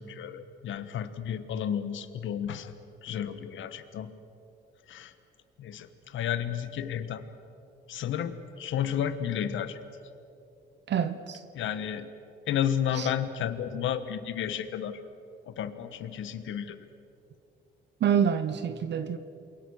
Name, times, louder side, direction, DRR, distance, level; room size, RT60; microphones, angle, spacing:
voice 1, 0.0-2.7 3.0-4.1 4.9-5.1 5.6-7.2 7.9-9.8 11.5-12.1 12.5-15.0 15.5-16.8, left 9 dB, 75° left, 1.4 m, -32 dB
voice 2, 10.9-11.4 13.0-13.1 18.0-19.2, right 8 dB, 60° right, 1.1 m, -26 dB
28.5 x 22.5 x 6.5 m
cardioid pair, 90°, 20 cm